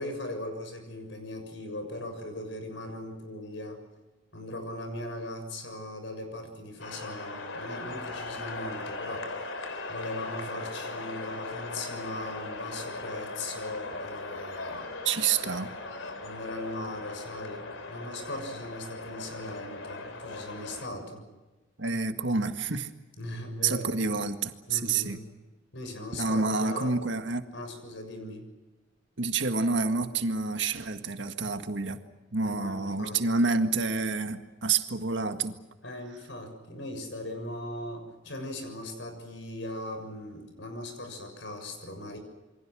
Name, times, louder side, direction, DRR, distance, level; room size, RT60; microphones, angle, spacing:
voice 1, 0.0-3.8 4.3-9.3 9.9-14.9 16.2-21.3 23.2-23.9 24.7-25.3 25.7-27.0 27.5-28.5 32.4-33.2 35.8-42.2, left 1 dB, 65° left, 6 dB, 6.8 m, -39 dB
sound 1, 6.8-20.9, left 3 dB, 90° left, 3.7 m, -39 dB
voice 2, 15.0-15.7 21.8-22.9 23.6-25.2 26.2-27.5 29.2-32.0 32.3-35.6, right 4 dB, 65° right, 7 dB, 1.8 m, -28 dB
28.5 x 24.0 x 6.3 m, 1.2 s
head